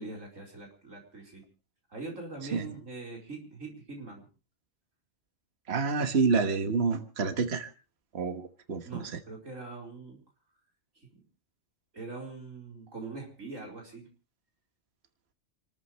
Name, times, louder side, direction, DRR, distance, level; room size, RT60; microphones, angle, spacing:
voice 1, 0.0-1.4 1.9-4.3 8.8-10.2 11.9-14.1, right 3 dB, 85° right, -1 dB, 5.0 m, -42 dB
voice 2, 5.7-7.7 8.1-9.0, right 4 dB, 55° right, 7 dB, 1.6 m, -28 dB
29.0 x 13.5 x 3.2 m, 0.34 s
omnidirectional pair, 1.3 m